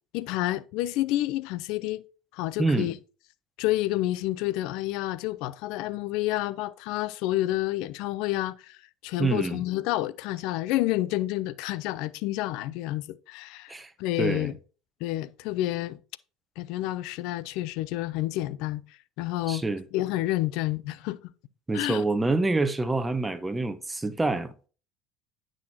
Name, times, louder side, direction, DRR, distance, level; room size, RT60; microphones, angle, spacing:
voice 1, 0.1-2.0 2.3-2.9 3.6-8.8 9.0-13.7 14.0-14.5 15.0-16.0 16.6-18.8 19.2-19.6 19.9-21.2 21.7-22.0, left 16 dB, 70° left, 0.5 m, -29 dB
voice 2, 2.6-2.9 9.2-9.6 13.7-13.9 14.2-14.5 19.5-19.8 21.7-24.7, right 3 dB, 15° right, 1.1 m, -27 dB
9.4 x 6.3 x 2.8 m
hypercardioid pair, 80°, 0 cm